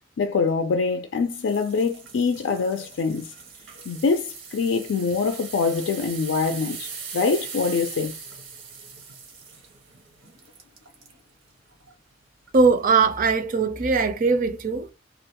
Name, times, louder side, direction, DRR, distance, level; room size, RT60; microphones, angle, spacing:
voice 1, 0.2-3.3 3.9-8.2, left 4 dB, 80° left, 0.4 m, -24 dB
sound 1, 1.3-11.2 11.7-11.9 12.5-12.6, right 5 dB, 90° right, 1.0 m, -40 dB
voice 2, 12.5-14.9, right 4 dB, 45° right, 0.4 m, -20 dB
2.4 x 2.1 x 2.8 m
head